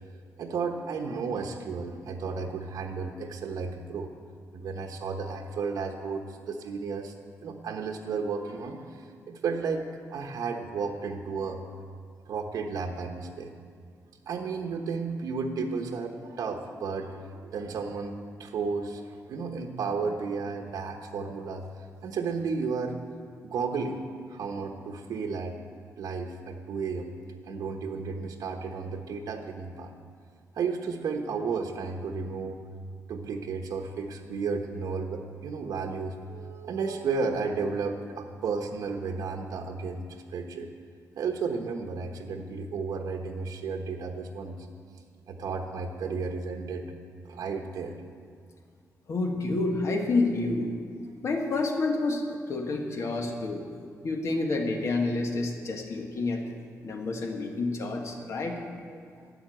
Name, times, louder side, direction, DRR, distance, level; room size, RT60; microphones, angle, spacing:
voice 1, 0.4-4.1 4.5-7.1 7.4-9.0 9.3-9.8 10.1-11.6 12.3-13.5 14.3-18.1 18.4-19.0 19.3-21.6 22.0-23.0 23.4-24.0 24.3-25.6 26.0-27.1 27.4-29.9 30.6-32.6 33.1-40.1 40.3-40.7 41.2-44.6 45.3-46.9 47.2-48.0 53.1-53.2 58.9-59.0, right 5 dB, 75° right, 2 dB, 1.1 m, -33 dB
voice 2, 49.1-50.7 51.2-53.6 54.0-56.4 56.8-58.6, left 3 dB, 50° left, 3 dB, 1.7 m, -29 dB
13.5 x 9.3 x 7.8 m, 2.1 s
wide cardioid pair, 140°, 6 cm